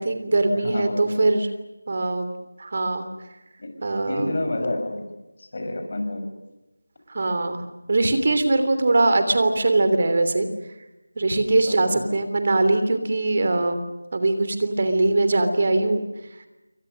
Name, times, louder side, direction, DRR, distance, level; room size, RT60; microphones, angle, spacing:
voice 1, 0.0-1.5 1.9-2.3 2.6-3.0 3.8-4.3 7.1-7.6 7.9-10.5 11.2-13.8 14.1-16.0, right 2 dB, 40° right, 9 dB, 3.2 m, -21 dB
voice 2, 0.6-1.3 3.6-3.7 4.1-5.0 5.4-6.3 11.7-12.0, left 1 dB, 45° left, 6 dB, 6.2 m, -29 dB
28.5 x 24.5 x 6.6 m, 1.0 s
figure-of-eight pair, 170°, 0 cm